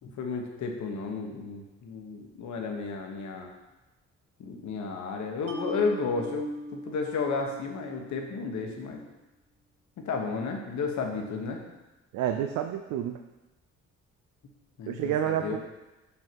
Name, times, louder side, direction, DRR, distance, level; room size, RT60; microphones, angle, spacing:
voice 1, 0.0-3.5 4.4-9.0 10.0-11.6 14.8-15.6, left 4 dB, 70° left, 2 dB, 1.2 m, -33 dB
Mallet percussion, 5.5-8.8, right 1 dB, 55° right, 1.1 m, -41 dB
voice 2, 12.1-13.2 14.9-15.6, right 10 dB, 85° right, 5 dB, 0.5 m, -29 dB
5.6 x 5.4 x 4.6 m, 1.1 s
cardioid pair, 90°, 30 cm